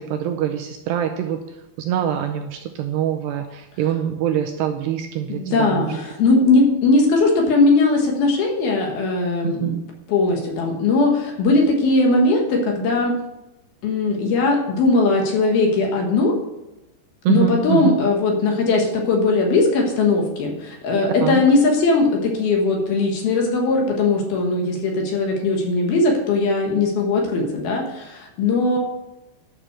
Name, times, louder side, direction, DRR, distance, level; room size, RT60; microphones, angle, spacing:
voice 1, 0.0-1.4 1.8-5.9 9.4-9.8 17.3-17.9 21.2-21.4, right 10 dB, 80° right, 5 dB, 2.5 m, -24 dB
voice 2, 5.3-9.7 10.1-13.1 13.8-16.3 17.3-28.8, left 3 dB, 60° left, 0 dB, 3.1 m, -19 dB
11.5 x 6.2 x 6.7 m, 0.93 s
omnidirectional pair, 5.4 m